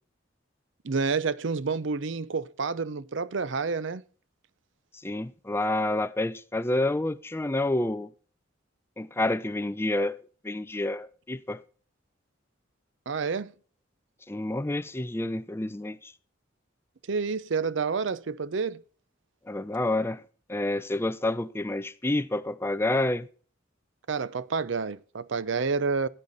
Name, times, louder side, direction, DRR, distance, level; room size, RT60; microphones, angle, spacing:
voice 1, 0.8-4.0 13.1-13.5 17.1-18.8 24.1-26.1, right 4 dB, 70° right, 0.6 m, -29 dB
voice 2, 5.0-8.1 9.0-10.2 10.4-11.6 14.3-16.1 19.5-20.2 20.5-23.3, left 2 dB, 10° left, 0.5 m, -28 dB
16.0 x 8.8 x 4.0 m
head